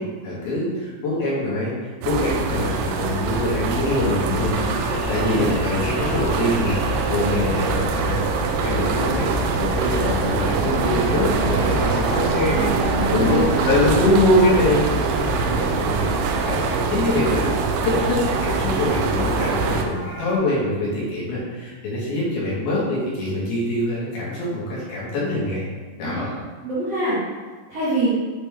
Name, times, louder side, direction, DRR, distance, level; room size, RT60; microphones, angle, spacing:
voice 1, 0.0-17.5 17.8-25.7 26.0-26.3, left 1 dB, 65° left, -7 dB, 3.3 m, -24 dB
sound 1, 2.0-19.8, right 3 dB, 85° right, 2.7 m, -23 dB
sound 2, 3.3-8.0, left 2 dB, 80° left, 3.4 m, -34 dB
sound 3, 8.5-20.4, left 1 dB, 45° left, 2.2 m, -41 dB
voice 2, 12.2-13.9 26.0-27.2 27.7-28.1, right 1 dB, 60° right, -12 dB, 1.7 m, -26 dB
7.8 x 4.1 x 3.5 m, 1.4 s
omnidirectional pair, 4.9 m